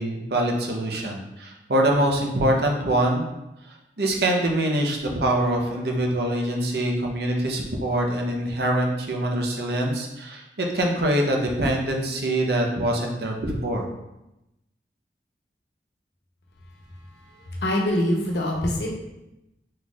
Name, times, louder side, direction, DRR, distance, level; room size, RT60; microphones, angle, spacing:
voice 1, 0.0-3.2 3.7-13.8, right 1 dB, 65° right, 0 dB, 0.7 m, -24 dB
voice 2, 17.3-18.9, left 1 dB, 75° left, -1 dB, 0.9 m, -24 dB
4.4 x 4.1 x 2.4 m, 0.93 s
head